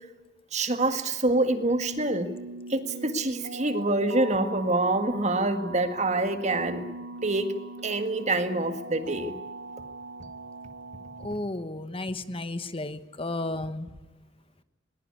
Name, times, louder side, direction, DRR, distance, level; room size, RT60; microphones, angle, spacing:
voice 1, 0.5-2.3 2.7-6.9 7.2-7.5 7.8-9.3, right 2 dB, 35° right, 9 dB, 1.8 m, -26 dB
sound 1, 1.7-11.3, right 2 dB, 65° right, 1.1 m, -41 dB
voice 2, 11.2-13.9, left 2 dB, 30° left, 11 dB, 1.1 m, -33 dB
21.5 x 20.5 x 9.6 m, 1.1 s
head